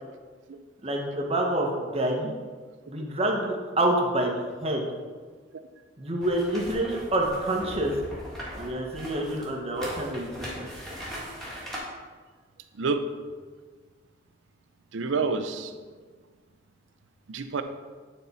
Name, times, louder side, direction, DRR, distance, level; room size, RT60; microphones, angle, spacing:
voice 1, 0.8-2.3 2.9-4.8 6.0-7.9 8.5-10.7, right 1 dB, 30° right, 1 dB, 0.8 m, -27 dB
sound 1, 6.2-11.8, equal, ahead, 1.6 m, -39 dB
voice 2, 14.9-15.7 17.3-17.6, right 4 dB, 85° right, 8 dB, 0.5 m, -28 dB
9.1 x 4.2 x 4.0 m, 1.5 s
head